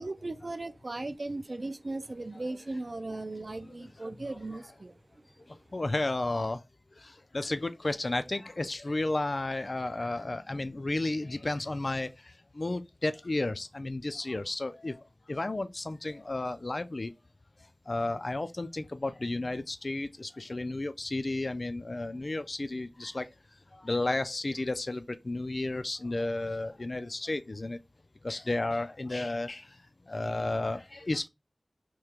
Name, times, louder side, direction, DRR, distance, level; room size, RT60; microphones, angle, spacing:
voice 1, 0.0-5.0, right 2 dB, 55° right, 0.3 m, -37 dB
voice 2, 5.5-6.6 6.9-17.1 17.9-23.3 23.7-27.8 28.2-31.3, left 2 dB, 55° left, 0.3 m, -33 dB
3.1 x 2.8 x 3.4 m
wide cardioid pair, 50°, 0 cm